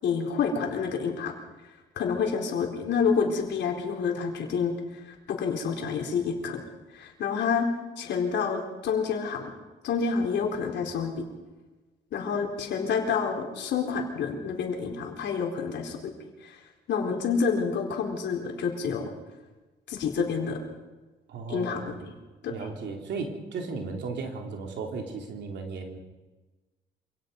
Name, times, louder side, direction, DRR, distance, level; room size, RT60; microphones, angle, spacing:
voice 1, 0.0-1.3 2.0-4.7 5.0-6.6 6.9-7.7 8.0-9.5 9.8-11.2 12.1-16.1 16.4-16.6 16.9-19.1 19.9-20.6 21.5-22.2 22.4-22.5, left 6 dB, 80° left, 2 dB, 4.2 m, -28 dB
voice 2, 21.3-22.0 22.5-26.0, right 4 dB, 80° right, 2 dB, 3.2 m, -35 dB
27.0 x 17.5 x 5.4 m, 1.2 s
cardioid pair, 100°, 18 cm